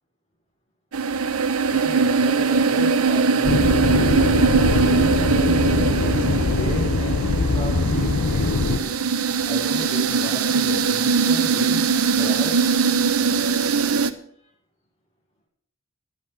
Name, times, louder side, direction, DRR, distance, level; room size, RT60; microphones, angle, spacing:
sound 1, 0.9-14.1, right 5 dB, 90° right, 0.9 m, -21 dB
voice 1, 1.7-3.9 4.6-9.0 9.4-11.8 12.2-12.7, right 1 dB, 30° left, -3 dB, 5.7 m, -34 dB
sound 2, 3.4-8.8, left 3 dB, 90° left, 0.9 m, -22 dB
11.0 x 9.5 x 6.9 m, 0.66 s
head